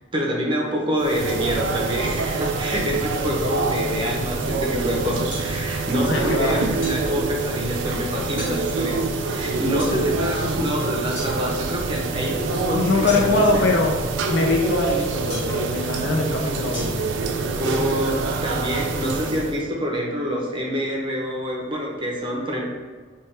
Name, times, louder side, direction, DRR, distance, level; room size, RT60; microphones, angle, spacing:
voice 1, 0.1-13.6 17.6-22.7, equal, 25° right, -2 dB, 0.6 m, -26 dB
sound 1, 1.0-19.6, right 3 dB, 80° right, 0.4 m, -26 dB
sound 2, 5.3-5.5 6.8-7.0 8.4-8.6 9.8-10.0 11.1-11.3 13.0-13.5 15.3-15.6 16.7-16.8, left 1 dB, 40° left, 1.4 m, -34 dB
voice 2, 6.0-6.6 12.7-13.9 14.3-17.0, left 2 dB, 70° left, -1 dB, 0.6 m, -22 dB
3.3 x 2.3 x 4.3 m, 1.5 s
head